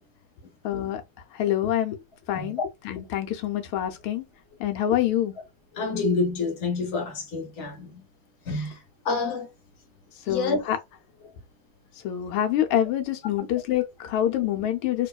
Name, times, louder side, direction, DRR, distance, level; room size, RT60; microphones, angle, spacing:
voice 1, 0.6-1.0 1.3-2.0 2.3-2.6 2.8-4.2 4.6-5.3 10.3-10.8 12.0-15.1, left 11 dB, 85° left, 1.5 m, -26 dB
voice 2, 5.7-8.0 8.4-8.8 9.0-9.5 10.3-10.6, left 3 dB, 40° left, 1.1 m, -28 dB
3.4 x 3.0 x 2.2 m
omnidirectional pair, 2.3 m